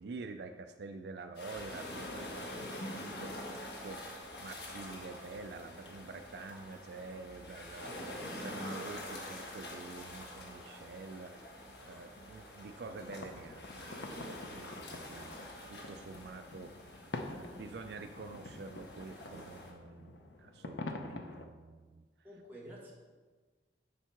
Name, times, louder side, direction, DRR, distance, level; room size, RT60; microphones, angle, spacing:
voice 1, 0.0-15.4 15.7-16.9 17.3-22.0, right 3 dB, 65° right, 7 dB, 0.4 m, -48 dB
sound 1, 1.4-19.7, left 1 dB, 60° left, 1.4 m, -46 dB
voice 2, 3.2-3.9 22.2-22.9, equal, 10° right, -5 dB, 1.7 m, -52 dB
sound 2, 13.0-21.5, left 2 dB, 80° left, 0.7 m, -47 dB
7.2 x 4.6 x 5.8 m, 1.4 s
head